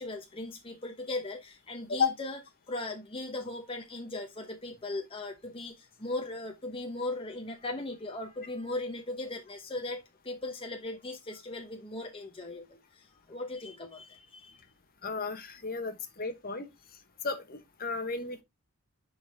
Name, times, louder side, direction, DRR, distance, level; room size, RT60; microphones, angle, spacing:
voice 1, 0.0-2.4 2.7-14.6, left 2 dB, 25° left, 0.9 m, -38 dB
voice 2, 15.0-16.7 17.2-18.4, left 5 dB, 40° left, 1.1 m, -33 dB
11.0 x 4.1 x 3.4 m
head